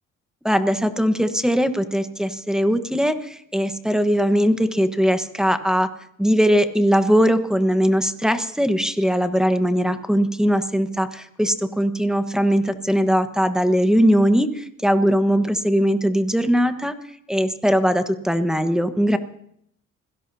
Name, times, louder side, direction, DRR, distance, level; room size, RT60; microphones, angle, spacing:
voice 1, 0.4-5.9 6.2-16.9 17.3-19.2, equal, ahead, 9 dB, 1.3 m, -20 dB
26.0 x 17.0 x 2.8 m, 0.71 s
cardioid pair, 90°, 30 cm